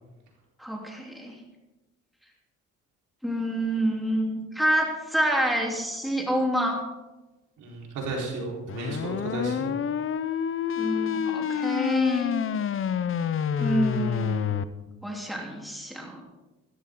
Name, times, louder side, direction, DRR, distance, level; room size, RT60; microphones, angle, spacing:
voice 1, 0.6-1.4 3.2-6.8 10.8-12.4 13.6-14.6 15.0-16.2, right 1 dB, ahead, -1 dB, 3.4 m, -27 dB
voice 2, 7.6-9.7, right 2 dB, 80° right, -1 dB, 4.3 m, -33 dB
sound 1, 8.7-14.6, left 8 dB, 45° left, 0.7 m, -28 dB
15.5 x 14.5 x 3.9 m, 1.1 s
cardioid pair, 90°, 30 cm